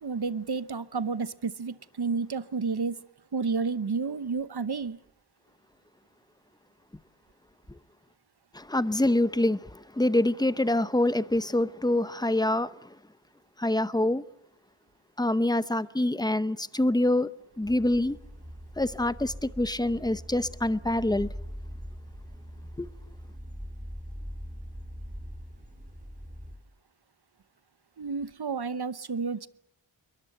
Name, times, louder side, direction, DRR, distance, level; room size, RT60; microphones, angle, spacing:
voice 1, 0.0-3.0 3.3-5.0 28.0-29.5, right 5 dB, 50° right, 1.0 m, -31 dB
voice 2, 8.5-12.9 13.6-14.2 15.2-17.3 17.6-18.2 18.8-21.3 22.8-22.9, left 1 dB, 10° left, 0.8 m, -26 dB
sound 1, 17.6-26.6, equal, 15° right, 4.8 m, -42 dB
22.5 x 20.5 x 7.9 m
wide cardioid pair, 85°, 49 cm